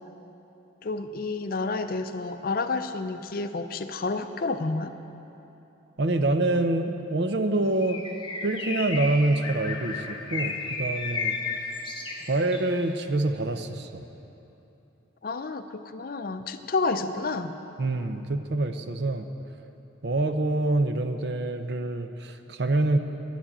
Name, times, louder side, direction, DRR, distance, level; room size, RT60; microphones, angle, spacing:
voice 1, 0.8-4.9 15.2-17.5, left 3 dB, 50° left, 9 dB, 0.5 m, -30 dB
voice 2, 6.0-8.0 8.4-11.3 12.3-14.0 17.8-19.3 20.0-23.0, right 2 dB, 60° right, 8 dB, 0.6 m, -26 dB
Bird, 7.8-12.7, left 4 dB, 25° left, 0.9 m, -33 dB
11.0 x 7.2 x 8.8 m, 3.0 s
head